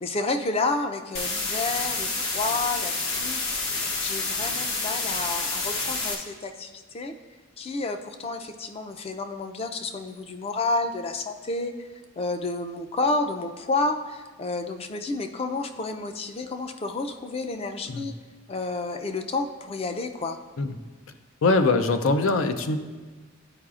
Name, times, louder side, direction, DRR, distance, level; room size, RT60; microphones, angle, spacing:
voice 1, 0.0-3.4 4.0-7.1 7.6-11.9 12.2-18.1 18.5-20.4, left 3 dB, 30° left, 7 dB, 0.4 m, -30 dB
sound 1, 1.1-6.1, left 3 dB, 65° left, 0.9 m, -28 dB
voice 2, 21.4-22.8, left 3 dB, 85° left, 8 dB, 0.5 m, -22 dB
11.5 x 4.8 x 2.4 m, 1.4 s
head